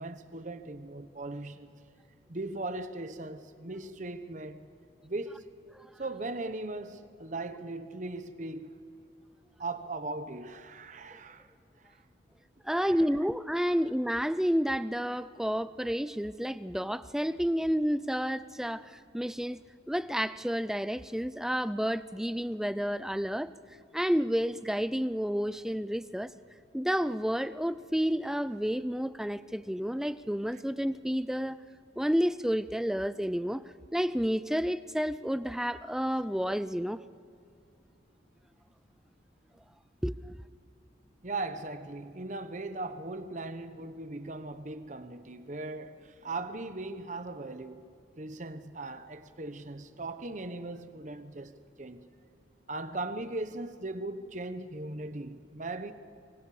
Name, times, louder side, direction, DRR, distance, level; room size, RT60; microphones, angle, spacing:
voice 1, 0.0-1.7 2.3-4.7 5.0-5.5 6.0-8.8 9.6-11.5 11.8-12.0 12.8-13.0 41.2-47.9 48.2-52.1 52.7-55.9, right 2 dB, 40° right, 1.0 m, -39 dB
voice 2, 12.6-19.6 19.9-23.5 23.9-26.3 26.7-31.6 32.0-33.6 33.9-37.0 40.0-40.4, equal, 5° right, 0.4 m, -30 dB
24.5 x 23.5 x 5.0 m
head